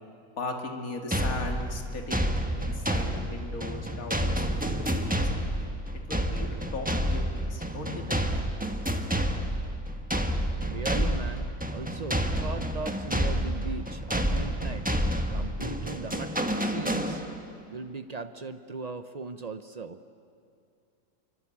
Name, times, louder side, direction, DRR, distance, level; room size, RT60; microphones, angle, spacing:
voice 1, 0.4-5.1 6.1-8.3, left 3 dB, 50° left, 3 dB, 2.6 m, -38 dB
sound 1, 1.1-17.6, equal, 5° right, 1.1 m, -29 dB
voice 2, 10.6-14.9 15.3-17.2 17.7-20.0, right 4 dB, 70° right, 9 dB, 0.3 m, -38 dB
27.5 x 24.5 x 8.6 m, 2.4 s
omnidirectional pair, 1.9 m